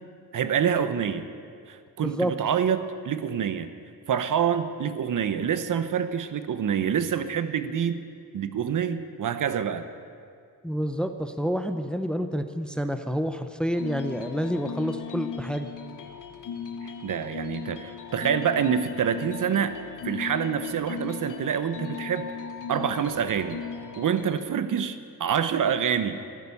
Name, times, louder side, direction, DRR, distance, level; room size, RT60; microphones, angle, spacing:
voice 1, 0.3-1.2 1.7-3.7 4.1-8.0 8.3-9.9 16.8-19.7 20.0-22.3 22.7-23.6 24.0-26.2, right 8 dB, 55° right, 11 dB, 0.9 m, -26 dB
voice 2, 2.0-2.3 10.6-15.7, equal, ahead, 8 dB, 0.7 m, -28 dB
sound 1, 13.8-24.4, left 6 dB, 55° left, 0.9 m, -37 dB
15.0 x 12.5 x 7.1 m, 2.3 s
cardioid pair, 110°, 37 cm